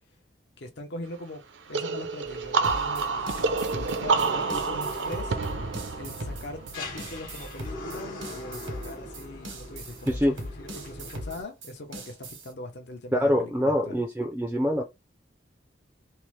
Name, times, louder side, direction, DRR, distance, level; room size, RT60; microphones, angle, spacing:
voice 1, 0.6-1.4 1.7-5.4 5.9-14.0, left 2 dB, 65° left, 0.6 m, -41 dB
sound 1, 1.7-7.3, right 4 dB, 75° right, 0.5 m, -29 dB
sound 2, 2.2-11.4, left 1 dB, 50° left, 1.1 m, -41 dB
sound 3, 2.6-12.5, right 1 dB, 90° right, 1.0 m, -39 dB
voice 2, 13.1-14.8, equal, 10° right, 0.3 m, -24 dB
2.8 x 2.0 x 3.1 m
head